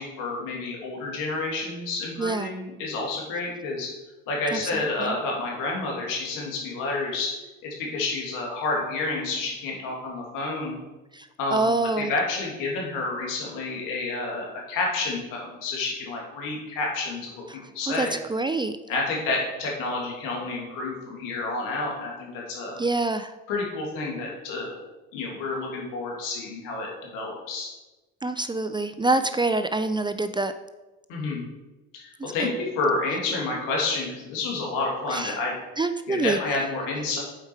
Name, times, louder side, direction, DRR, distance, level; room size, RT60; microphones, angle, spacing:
voice 1, 0.0-3.9 4.3-7.3 7.6-10.8 11.4-11.7 12.0-17.4 17.7-18.2 18.9-22.8 23.5-24.8 25.1-27.7 31.1-31.5 31.9-35.6 36.1-37.2, left 3 dB, 80° left, -2 dB, 2.3 m, -29 dB
voice 2, 2.2-2.5 4.5-5.2 11.2-11.3 11.5-12.1 18.0-18.7 22.8-23.3 28.2-30.5 32.4-32.5 35.1-35.4 35.8-36.4, right 2 dB, 15° right, 10 dB, 0.4 m, -26 dB
7.6 x 4.8 x 4.5 m, 1.1 s
supercardioid pair, 70°, 31 cm